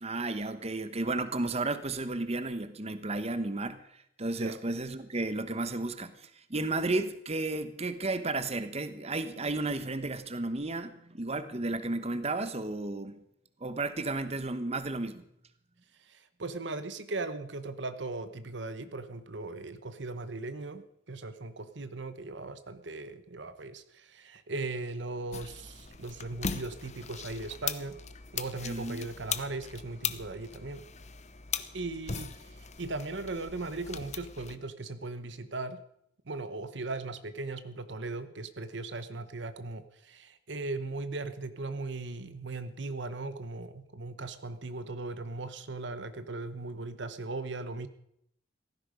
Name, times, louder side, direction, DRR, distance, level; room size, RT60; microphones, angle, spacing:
voice 1, 0.0-13.1 13.6-15.2 28.6-29.1, right 2 dB, 35° right, 11 dB, 1.1 m, -33 dB
voice 2, 16.0-28.0 28.3-30.8 31.7-35.8 36.3-47.9, right 3 dB, 65° right, 11 dB, 1.1 m, -38 dB
sound 1, 25.3-34.6, left 7 dB, 40° left, 0.9 m, -39 dB
17.0 x 15.0 x 5.2 m, 0.73 s
head